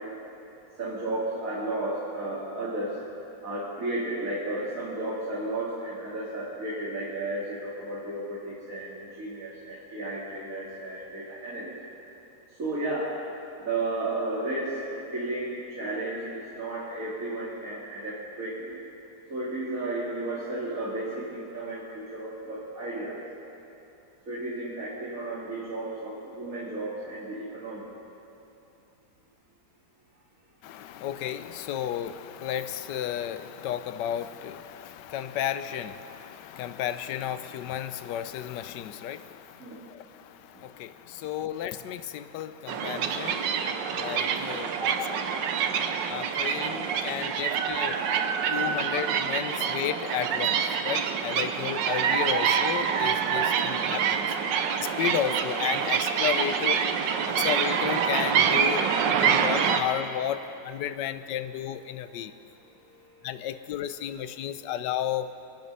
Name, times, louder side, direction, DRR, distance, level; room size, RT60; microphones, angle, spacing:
voice 1, 0.8-2.9 3.4-11.7 12.6-13.1 13.6-18.7 19.3-23.2 24.3-27.8 39.6-39.8 43.1-45.3, right 2 dB, 50° right, -8 dB, 3.0 m, -33 dB
voice 2, 30.6-45.1 46.1-48.0 48.5-54.4 54.8-57.0 57.3-58.8 59.2-62.3 63.2-65.3, left 10 dB, 80° left, 12 dB, 1.3 m, -33 dB
sound 1, 42.7-59.8, right 7 dB, 90° right, 1.5 m, -26 dB
25.5 x 9.4 x 5.5 m, 2.9 s
omnidirectional pair, 1.9 m